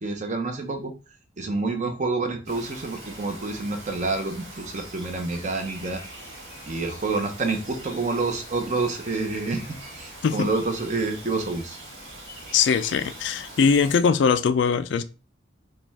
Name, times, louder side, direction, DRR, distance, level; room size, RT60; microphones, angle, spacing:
voice 1, 0.0-0.9 1.4-6.0 6.7-11.8, right 3 dB, 40° right, 0.7 m, -28 dB
Bird vocalization bird call bird song, 2.5-14.0, right 1 dB, 60° right, 2.0 m, -42 dB
voice 2, 12.5-15.0, left 6 dB, 70° left, 0.3 m, -21 dB
4.8 x 2.3 x 3.4 m
head